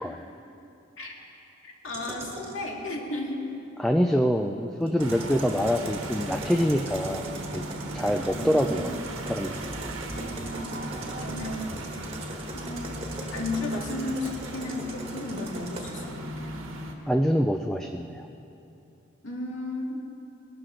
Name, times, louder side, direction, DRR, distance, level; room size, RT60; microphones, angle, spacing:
voice 1, 1.6-3.5 7.9-8.1 8.4-9.0 10.1-10.7 11.2-11.8 12.5-16.6 19.2-20.0, left 2 dB, 70° left, -1 dB, 2.2 m, -34 dB
sound 1, 1.9-2.6 4.9-16.1, right 2 dB, 30° right, 1.5 m, -40 dB
voice 2, 3.8-7.2 7.5-7.6 7.9-9.0 9.3-9.5 17.1-18.3, equal, ahead, 3 dB, 0.4 m, -25 dB
sound 2, 5.0-17.0, right 1 dB, 80° right, 1.5 m, -37 dB
20.5 x 12.5 x 3.8 m, 2.7 s
head